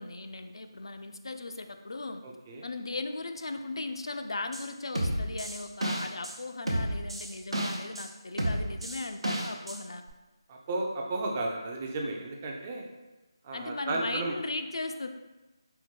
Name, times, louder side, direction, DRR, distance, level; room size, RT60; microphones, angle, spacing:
voice 1, 0.0-2.2 2.6-10.0 13.5-15.1, left 2 dB, 70° left, 7 dB, 0.3 m, -37 dB
voice 2, 2.2-2.7 10.5-12.8 13.4-14.3, right 2 dB, 20° right, 0 dB, 0.3 m, -33 dB
sound 1, 4.5-4.6 5.0-6.3 6.7-8.1 8.4-9.8 10.1-10.2, right 1 dB, 85° right, 0.8 m, -31 dB
4.4 x 2.1 x 4.3 m, 1.1 s
figure-of-eight pair, 170°, 3 cm